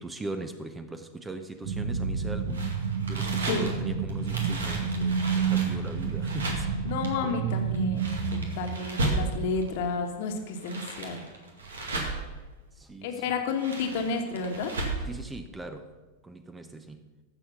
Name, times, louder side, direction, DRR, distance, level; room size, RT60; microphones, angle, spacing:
voice 1, 0.0-6.9 7.2-7.4 12.7-13.3 15.1-16.0 16.2-17.1, right 2 dB, 15° right, 8 dB, 0.7 m, -40 dB
sound 1, 1.6-8.6, right 6 dB, 60° right, 1.4 m, -29 dB
sound 2, 2.5-9.7 10.3-12.4 13.3-15.1, right 2 dB, 85° right, 1.9 m, -34 dB
voice 2, 6.8-8.0 8.3-11.2 13.0-14.7, left 4 dB, 60° left, 4 dB, 1.4 m, -31 dB
14.5 x 5.0 x 5.8 m, 1.3 s
hypercardioid pair, 100°, 0 cm